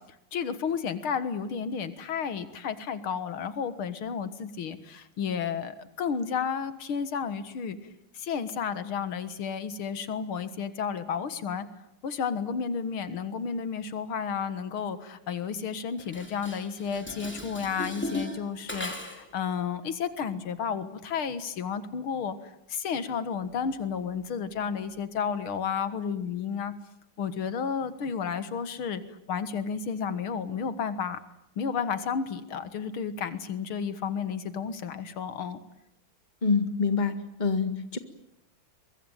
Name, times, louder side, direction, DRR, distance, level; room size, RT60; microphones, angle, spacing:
voice 1, 0.3-7.8 8.1-11.7 12.0-26.7 27.2-29.0 29.3-31.2 31.6-35.6, left 6 dB, 90° left, 12 dB, 2.4 m, -32 dB
Dishes pots and pans, 16.0-19.4, left 1 dB, 5° left, 2.9 m, -37 dB
voice 2, 36.4-38.0, left 4 dB, 20° left, 9 dB, 1.9 m, -26 dB
23.0 x 23.0 x 9.2 m, 0.79 s
omnidirectional pair, 2.3 m